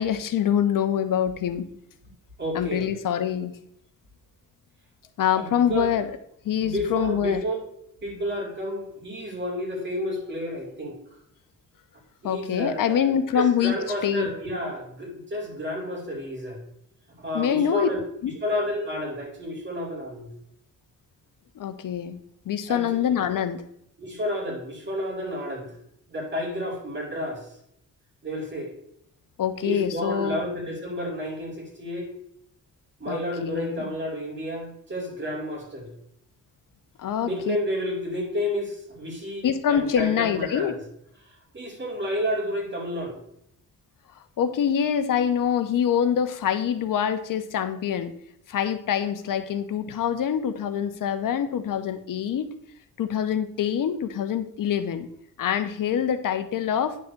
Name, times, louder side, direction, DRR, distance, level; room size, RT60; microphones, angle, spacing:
voice 1, 0.0-1.7 2.5-3.5 5.2-6.1 6.4-7.4 12.2-13.7 14.0-14.3 17.3-17.9 18.2-18.3 21.6-22.2 22.5-23.6 29.4-30.4 33.1-33.9 37.0-37.6 39.4-40.8 44.4-48.1 48.5-52.5 53.0-55.1 55.4-57.0, left 9 dB, 75° left, 10 dB, 0.7 m, -25 dB
voice 2, 2.4-2.9 5.3-6.0 6.6-7.5 8.0-11.0 12.2-16.6 17.2-18.0 18.4-20.3 22.7-23.1 24.0-25.7 26.1-27.5 28.2-28.7 29.6-32.1 33.0-35.9 37.2-40.8 41.2-43.2, equal, 35° right, -1 dB, 2.8 m, -31 dB
9.6 x 3.5 x 6.6 m, 0.74 s
wide cardioid pair, 135°, 33 cm